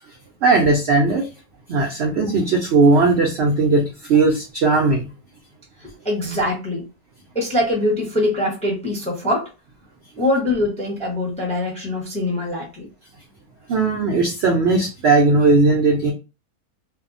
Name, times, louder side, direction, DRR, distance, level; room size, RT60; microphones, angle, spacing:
voice 1, 0.4-1.3 1.7-5.1 13.7-16.1, right 3 dB, 70° right, 0 dB, 0.6 m, -17 dB
voice 2, 5.8-6.8 7.3-9.5 10.2-12.9, left 1 dB, 5° left, -3 dB, 0.5 m, -23 dB
2.6 x 2.2 x 2.4 m, 0.29 s
omnidirectional pair, 1.7 m